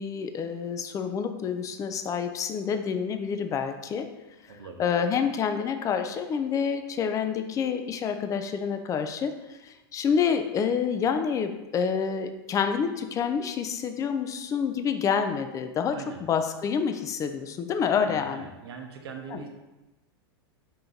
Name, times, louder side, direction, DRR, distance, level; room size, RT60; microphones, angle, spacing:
voice 1, 0.0-4.1 4.8-18.4 19.3-19.4, left 6 dB, 25° left, 7 dB, 0.4 m, -28 dB
voice 2, 4.5-4.9 15.9-16.3 17.9-19.5, right 5 dB, 80° right, 4 dB, 0.7 m, -41 dB
4.4 x 2.5 x 3.8 m, 1.0 s
hypercardioid pair, 115°, 13 cm